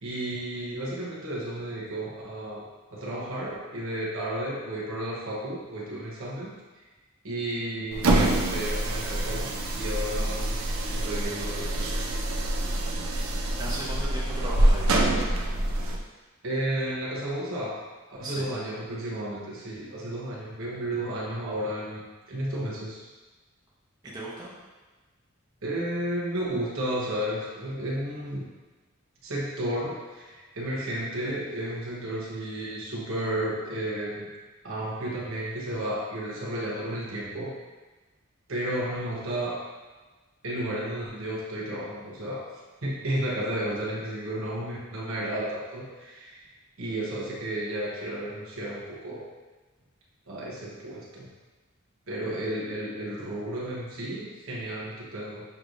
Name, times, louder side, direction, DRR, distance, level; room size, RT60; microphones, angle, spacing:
voice 1, 0.0-6.5 7.2-10.5 10.9-11.9 16.4-17.8 18.1-23.1 25.6-28.5 29.2-34.3 34.6-37.5 38.5-39.6 40.4-42.5 42.8-46.4 46.8-49.2 50.3-51.3 52.1-55.4, right 1 dB, 70° right, -5 dB, 1.1 m, -32 dB
sound 1, 7.9-16.0, right 1 dB, 85° right, 0.6 m, -26 dB
voice 2, 13.6-14.9 18.2-18.5 24.0-24.5, right 1 dB, 20° right, -7 dB, 0.9 m, -36 dB
6.6 x 3.1 x 2.6 m, 1.3 s
head